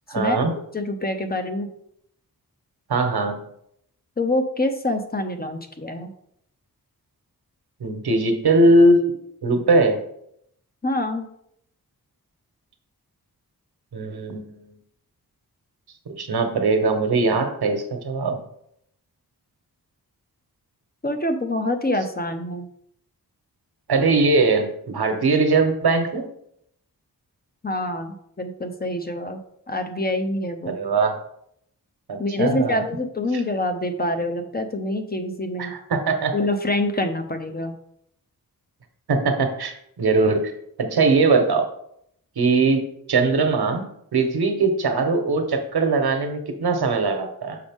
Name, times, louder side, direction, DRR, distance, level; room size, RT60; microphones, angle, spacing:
voice 1, 0.1-0.5 2.9-3.5 7.8-9.1 9.4-10.0 13.9-14.6 16.2-18.4 23.9-26.2 30.7-31.1 32.1-32.8 33.3-33.4 35.6-36.3 39.1-40.5 40.8-41.6 42.4-47.6, right 3 dB, 85° right, 5 dB, 1.2 m, -20 dB
voice 2, 0.7-1.7 4.2-6.1 10.8-11.3 21.0-22.7 27.6-29.4 29.7-30.8 32.2-35.7 36.3-37.7, left 1 dB, 25° left, 6 dB, 0.7 m, -26 dB
6.7 x 5.1 x 3.6 m, 0.72 s
wide cardioid pair, 120°, 37 cm